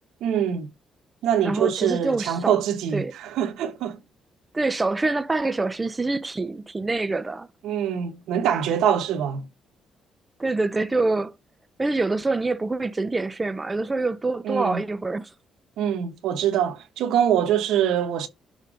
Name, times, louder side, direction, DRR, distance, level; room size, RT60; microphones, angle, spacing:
voice 1, 0.2-0.7 1.2-4.0 7.6-9.5 14.4-14.8 15.8-18.3, right 9 dB, 85° right, 1.4 m, -24 dB
voice 2, 1.4-2.6 2.9-3.1 4.5-7.5 10.4-11.3 11.8-15.3, right 3 dB, 20° right, 0.7 m, -25 dB
6.8 x 3.5 x 5.0 m
cardioid pair, 90°, 0 cm